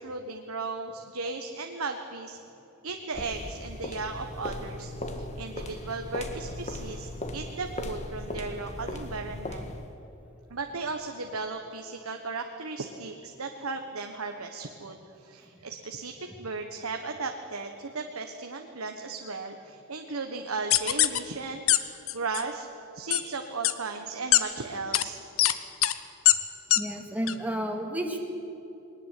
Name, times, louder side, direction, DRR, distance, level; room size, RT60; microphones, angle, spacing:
voice 1, 0.0-2.4 2.8-9.7 10.5-22.7 22.9-25.3, right 3 dB, 85° right, 5 dB, 1.4 m, -36 dB
sound 1, 3.1-10.0, left 1 dB, 30° left, 1.7 m, -38 dB
sound 2, 20.7-21.2 21.7-21.8 22.1-22.4 23.1-23.2 23.6-23.7 24.3-24.4 24.9-25.0 25.4-25.5 25.8-25.9 26.2-26.3 26.7-26.8 27.3-27.4, left 13 dB, 70° left, 1.0 m, -21 dB
voice 2, 26.7-28.2, right 1 dB, 5° right, 1 dB, 2.2 m, -31 dB
21.5 x 19.5 x 8.4 m, 3.0 s
head